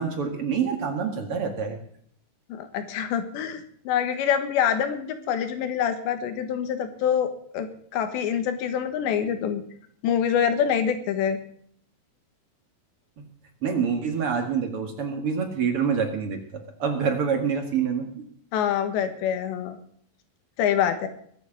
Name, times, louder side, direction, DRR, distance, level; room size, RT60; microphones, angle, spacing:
voice 1, 0.0-1.8 13.6-16.4 16.8-18.2, right 6 dB, 55° right, 4 dB, 1.6 m, -26 dB
voice 2, 2.5-9.6 10.0-11.4 18.5-19.8 20.6-21.1, left 8 dB, 80° left, 8 dB, 3.6 m, -25 dB
22.0 x 8.0 x 6.6 m, 0.63 s
omnidirectional pair, 5.2 m